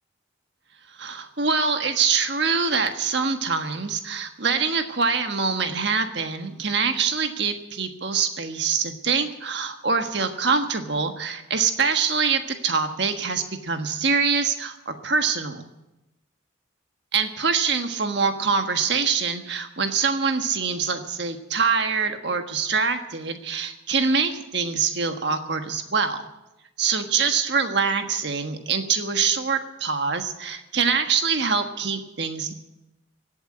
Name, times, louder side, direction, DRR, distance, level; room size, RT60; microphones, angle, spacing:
voice 1, 1.0-15.6 17.1-26.2 26.8-32.5, right 5 dB, 60° right, 7 dB, 1.4 m, -24 dB
17.0 x 8.1 x 9.6 m, 0.96 s
head